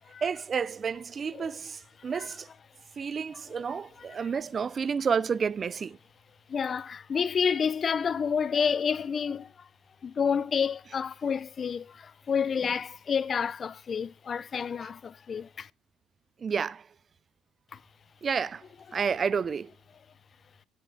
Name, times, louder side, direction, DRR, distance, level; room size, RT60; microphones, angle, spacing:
voice 1, 0.2-2.5 3.0-6.0 16.4-16.9 18.2-18.6 18.9-19.7, right 6 dB, 40° right, 0.6 m, -30 dB
voice 2, 6.5-9.5 10.0-15.7, left 6 dB, 40° left, 0.7 m, -29 dB
10.0 x 8.5 x 3.6 m
cardioid pair, 95°, 0 cm